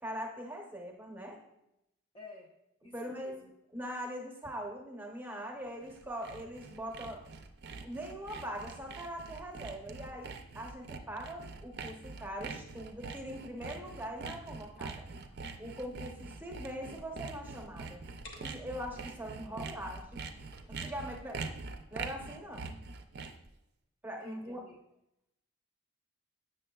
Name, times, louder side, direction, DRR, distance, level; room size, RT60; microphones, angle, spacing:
voice 1, 0.0-1.4 2.9-3.4 3.7-7.2 7.8-15.0 15.6-18.0 18.4-20.2 20.7-21.4 21.9-22.8 24.0-24.6, equal, 10° right, 1 dB, 0.7 m, -42 dB
voice 2, 2.1-2.5 2.8-3.5 16.3-16.5 18.9-19.7 21.3-21.5 24.2-24.8, left 3 dB, 25° left, 0 dB, 0.5 m, -54 dB
Sawing, 5.7-23.5, right 4 dB, 50° right, 0.4 m, -44 dB
sound 1, 17.0-19.4 20.0-21.2, left 1 dB, 55° left, 1.0 m, -55 dB
7.5 x 6.4 x 2.3 m, 0.86 s
head